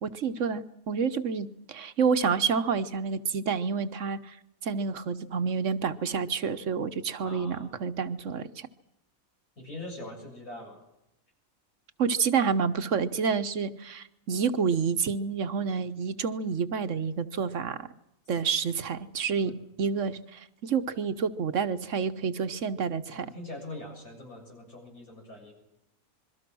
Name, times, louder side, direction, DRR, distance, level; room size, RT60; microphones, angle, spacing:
voice 1, 0.0-4.4 4.6-8.7 12.0-17.9 18.3-23.3, right 6 dB, 60° right, 11 dB, 1.3 m, -29 dB
voice 2, 7.2-7.7 9.6-10.8 19.4-19.5 23.1-25.5, left 2 dB, 85° left, 1 dB, 7.7 m, -42 dB
27.0 x 22.5 x 6.2 m, 0.87 s
omnidirectional pair, 1.5 m